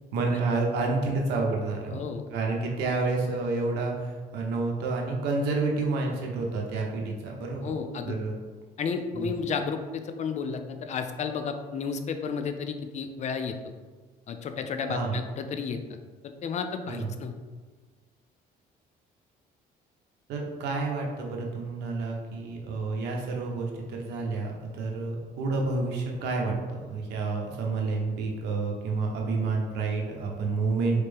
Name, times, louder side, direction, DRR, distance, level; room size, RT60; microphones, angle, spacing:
voice 1, 0.1-2.0 2.3-7.7 8.1-8.3 9.1-9.3 14.9-15.2 16.9-17.1 20.3-31.0, right 3 dB, 85° right, 0 dB, 0.9 m, -29 dB
voice 2, 1.9-2.3 7.6-8.2 8.8-13.6 14.3-15.8 16.2-17.3, left 5 dB, 45° left, 7 dB, 0.4 m, -32 dB
4.2 x 3.3 x 3.4 m, 1.4 s
cardioid pair, 110°, 17 cm